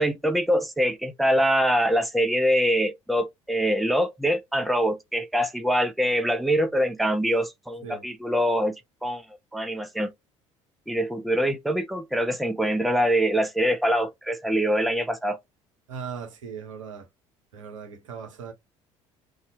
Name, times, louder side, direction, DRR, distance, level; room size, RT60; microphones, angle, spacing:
voice 1, 0.0-8.7 9.0-9.3 9.5-10.1 10.9-15.4, equal, ahead, 0.5 m, -24 dB
voice 2, 15.9-17.1 17.5-18.5, right 6 dB, 80° right, 0.7 m, -38 dB
2.7 x 2.3 x 2.6 m
figure-of-eight pair, 60°, 16 cm